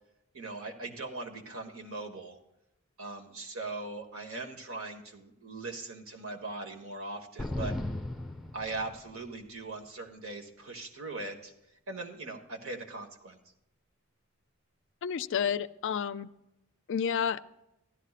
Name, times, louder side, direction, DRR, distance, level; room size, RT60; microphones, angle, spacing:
voice 1, 0.3-2.4 3.0-7.8 8.5-11.5 11.9-13.4, right 3 dB, 70° right, 3 dB, 1.5 m, -40 dB
sound 1, 7.4-9.3, left 1 dB, ahead, 1.0 m, -36 dB
voice 2, 15.0-16.3 16.9-17.4, left 7 dB, 60° left, 15 dB, 0.4 m, -30 dB
15.5 x 12.0 x 2.5 m, 0.88 s
head